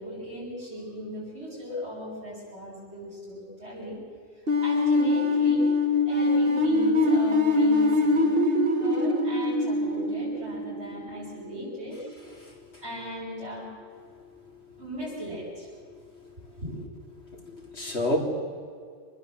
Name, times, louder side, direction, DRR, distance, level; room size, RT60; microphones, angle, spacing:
voice 1, 0.0-4.0 4.3-5.7 6.1-12.0 12.8-13.7 14.8-15.7 16.6-16.8, left 1 dB, 80° right, -10 dB, 7.8 m, -38 dB
sound 1, 4.5-11.3, left 2 dB, 60° right, 1.9 m, -23 dB
voice 2, 12.4-12.8 16.1-16.2 17.3-18.2, left 1 dB, 75° left, 0 dB, 4.3 m, -31 dB
26.0 x 19.5 x 8.0 m, 2.2 s
omnidirectional pair, 1.1 m